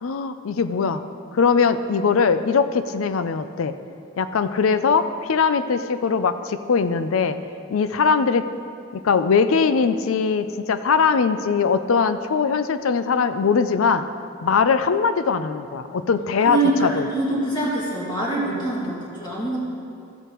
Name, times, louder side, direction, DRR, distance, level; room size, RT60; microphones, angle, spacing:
voice 1, 0.0-1.0 1.3-3.7 4.2-7.4 7.7-8.5 8.9-14.1 14.4-17.1 18.5-18.7, left 5 dB, 90° left, 11 dB, 0.5 m, -21 dB
voice 2, 16.4-19.7, right 2 dB, 20° left, -6 dB, 2.2 m, -24 dB
14.0 x 8.0 x 3.0 m, 2.5 s
head